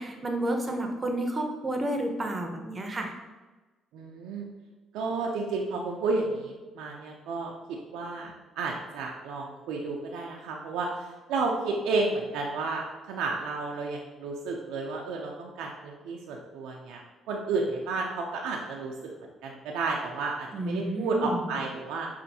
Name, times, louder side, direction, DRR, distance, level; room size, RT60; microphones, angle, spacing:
voice 1, 0.0-3.1 20.5-21.5, right 1 dB, 30° right, 3 dB, 0.6 m, -31 dB
voice 2, 3.9-4.5 4.9-7.5 7.9-17.0 17.3-18.9 19.4-22.1, right 3 dB, 85° right, 0 dB, 0.4 m, -32 dB
5.4 x 2.5 x 2.7 m, 1.2 s
supercardioid pair, 75°, 0 cm